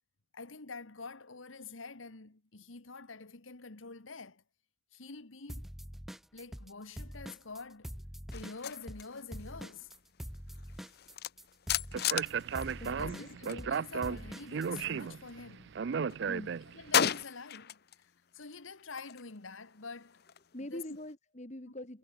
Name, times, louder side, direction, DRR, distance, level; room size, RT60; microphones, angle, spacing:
voice 1, 0.3-4.4 4.9-5.7 6.3-8.0 8.3-9.9 12.8-15.8 16.7-20.3 20.7-20.9 21.6-21.7, left 4 dB, 80° left, 1.6 m, -47 dB
sound 1, 5.5-6.7 7.0-14.9, equal, ahead, 0.5 m, -44 dB
sound 2, 8.3-13.7 13.9-15.6 15.9-18.0 18.4-21.1, left 9 dB, 50° left, 0.7 m, -37 dB
Speech, 11.9-17.0, right 6 dB, 60° right, 0.4 m, -35 dB
voice 2, 12.8-13.3 16.3-16.5 20.5-22.0, left 1 dB, 35° left, 2.2 m, -44 dB
head